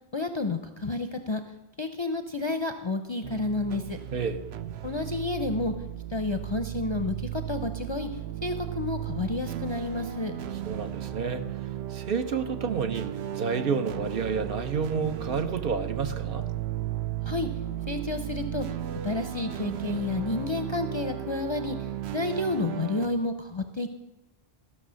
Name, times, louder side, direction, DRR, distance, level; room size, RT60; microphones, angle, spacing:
voice 1, 0.1-1.4 1.8-4.0 4.8-5.7 6.1-8.1 8.4-10.3 17.3-17.5 17.9-18.7 19.0-21.8 22.1-23.9, left 3 dB, 35° left, 7 dB, 0.5 m, -30 dB
sound 1, 3.2-23.1, right 12 dB, 85° right, 0.9 m, -35 dB
voice 2, 10.6-11.4 11.9-16.5, right 5 dB, 65° right, 8 dB, 0.9 m, -30 dB
13.0 x 6.3 x 6.2 m, 1.0 s
omnidirectional pair, 1.1 m